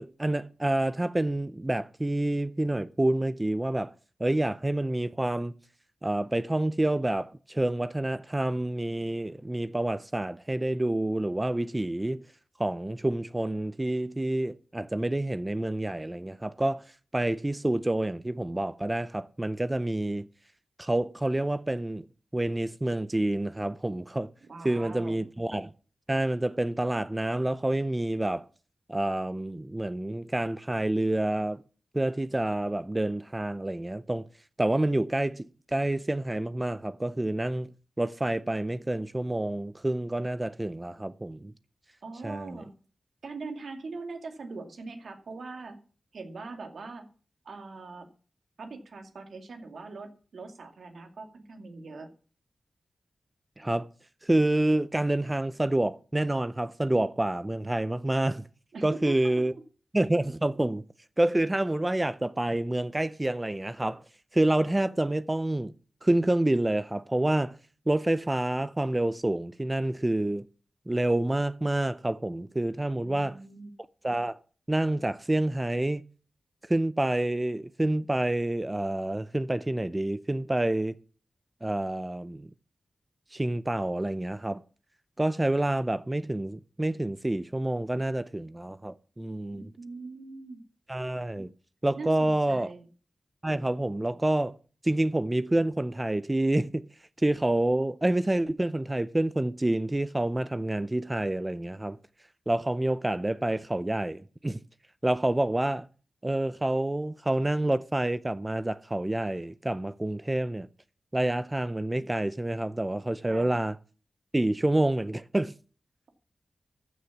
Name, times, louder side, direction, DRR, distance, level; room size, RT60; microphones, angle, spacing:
voice 1, 0.0-3.9 4.2-5.5 6.0-12.2 12.6-16.8 17.1-20.3 20.8-22.1 22.3-24.3 24.6-25.7 26.1-28.5 28.9-31.6 31.9-34.3 34.6-35.4 35.7-37.7 38.0-41.5 42.2-42.6 53.6-53.9 54.2-58.5 58.8-59.5 59.9-60.8 61.2-64.0 64.3-65.7 66.0-67.6 67.9-70.5 70.9-73.4 74.0-74.4 74.7-76.0 76.7-81.0 81.6-82.5 83.3-84.6 85.2-89.7 90.9-91.5 91.8-92.7 93.4-94.6 94.8-96.9 97.2-102.0 102.5-104.6 105.0-105.9 106.2-110.7 111.1-113.8 114.3-115.5, right 1 dB, 20° right, 0.6 m, -28 dB
voice 2, 24.5-25.2 42.0-42.7 43.2-45.8 46.1-47.1 47.4-48.1 48.6-52.1 58.7-59.3 73.0-73.7 89.5-90.6 92.0-92.9 113.3-113.5, right 3 dB, 80° right, 2.3 m, -42 dB
14.0 x 6.6 x 7.2 m
wide cardioid pair, 80°, 0 cm